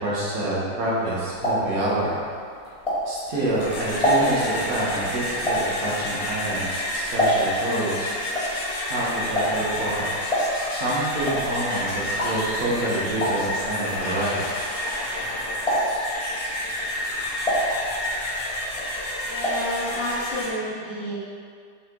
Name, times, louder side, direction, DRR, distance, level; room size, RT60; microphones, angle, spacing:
voice 1, 0.0-2.2 3.1-8.1 8.9-10.1 10.7-14.4, right 1 dB, 50° right, -7 dB, 1.8 m, -27 dB
sound 1, 0.9-3.4 3.8-7.7 8.0-15.3 15.6-16.2 16.6-18.4 18.7-19.7 20.0-20.1 20.4-20.5, equal, 25° left, 0.9 m, -26 dB
sound 2, 3.4-20.5, left 1 dB, 60° left, 1.7 m, -30 dB
voice 2, 19.2-21.1, equal, 40° left, -12 dB, 2.1 m, -30 dB
6.2 x 5.0 x 3.8 m, 2.2 s
omnidirectional pair, 2.0 m